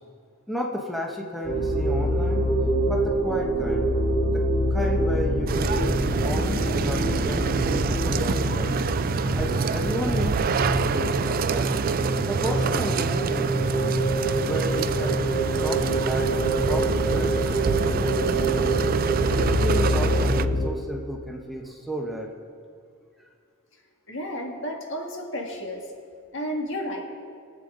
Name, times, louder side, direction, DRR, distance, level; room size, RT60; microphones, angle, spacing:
voice 1, 0.5-2.4 2.9-3.9 4.3-4.4 4.7-8.8 9.3-11.7 12.3-13.5 14.4-15.2 15.6-18.8 19.4-22.3, equal, ahead, -1 dB, 0.9 m, -33 dB
sound 1, 1.4-20.7, right 1 dB, 40° left, 1.7 m, -25 dB
sound 2, 5.5-20.5, right 5 dB, 45° right, 0.3 m, -27 dB
voice 2, 24.1-25.9 26.3-27.0, equal, 65° left, 0 dB, 2.0 m, -32 dB
22.5 x 8.0 x 3.8 m, 2.2 s
head